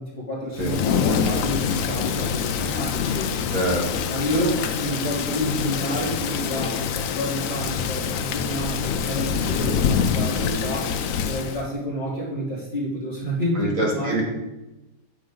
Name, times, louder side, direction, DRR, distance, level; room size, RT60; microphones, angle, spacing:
voice 1, 0.0-3.4 4.1-10.9 11.2-14.2, equal, 35° left, -6 dB, 3.6 m, -29 dB
Thunder / Rain, 0.5-11.6, left 7 dB, 65° left, 0.9 m, -25 dB
voice 2, 3.5-4.0 4.3-4.5 13.6-14.2, right 1 dB, 55° right, -2 dB, 2.3 m, -25 dB
9.4 x 8.5 x 3.9 m, 1.0 s
omnidirectional pair, 1.7 m